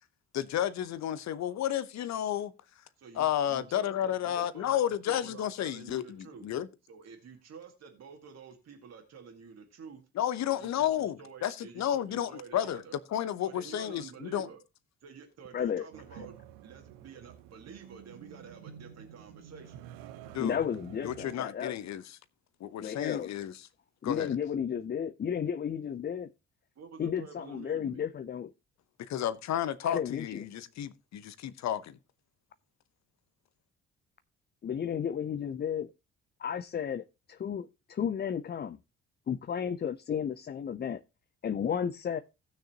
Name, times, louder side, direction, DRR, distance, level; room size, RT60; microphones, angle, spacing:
voice 1, 0.3-2.5 3.1-6.7 10.2-12.8 13.1-14.5 20.3-20.6 21.0-22.0 22.6-23.5 24.0-24.4 29.0-32.0, left 11 dB, 50° left, 0.9 m, -32 dB
voice 2, 3.0-6.5 6.9-10.0 10.5-13.0 13.4-14.6 15.0-16.3 16.6-19.9 26.8-28.1, right 6 dB, 45° right, 2.1 m, -49 dB
voice 3, 15.5-15.9 16.2-16.3 20.4-21.7 22.8-23.3 24.0-26.3 27.0-28.5 29.8-30.4 34.6-35.9 36.4-38.8 39.3-41.0 41.4-42.2, left 8 dB, 30° left, 0.6 m, -33 dB
sound 1, 15.9-21.4, right 10 dB, 65° right, 0.8 m, -49 dB
17.0 x 6.4 x 2.9 m
figure-of-eight pair, 45°, 36 cm